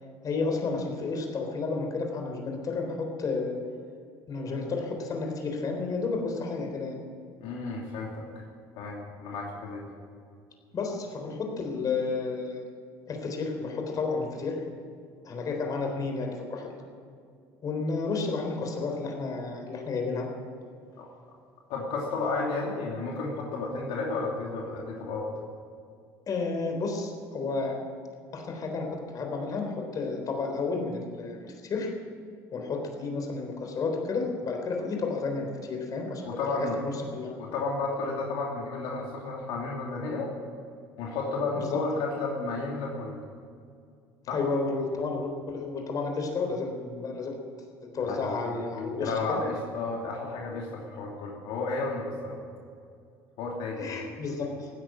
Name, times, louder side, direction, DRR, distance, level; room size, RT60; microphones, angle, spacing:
voice 1, 0.2-3.6 4.3-7.0 10.7-12.6 13.1-14.6 15.2-16.7 17.6-20.3 26.3-27.8 28.3-31.9 32.5-37.3 41.6-41.8 44.3-47.4 47.9-49.4 53.8-54.7, left 4 dB, 45° left, 2 dB, 3.7 m, -31 dB
voice 2, 7.4-8.2 8.8-9.9 21.0-21.1 21.7-25.3 36.2-36.8 37.4-40.3 41.0-43.2 44.3-44.4 48.0-52.4 53.4-53.9, left 3 dB, 75° left, -2 dB, 2.8 m, -32 dB
15.5 x 10.0 x 8.9 m, 2.3 s
supercardioid pair, 95°, 9 cm